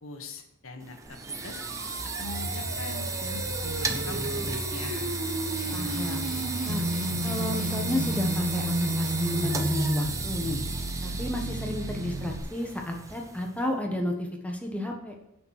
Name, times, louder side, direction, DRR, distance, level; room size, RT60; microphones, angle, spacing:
voice 1, 0.0-1.6 2.2-5.2, left 3 dB, 60° left, 5 dB, 1.4 m, -42 dB
sound 1, 0.8-13.6, right 3 dB, 15° right, 0.6 m, -34 dB
sound 2, 1.1-12.4, right 1 dB, 75° right, 1.1 m, -33 dB
sound 3, 5.5-8.3, left 3 dB, 35° left, 0.8 m, -43 dB
voice 2, 5.7-6.3 6.6-6.8 7.2-10.6 11.0-15.1, left 1 dB, 5° left, 1 dB, 1.3 m, -32 dB
8.9 x 6.1 x 6.4 m, 0.81 s
head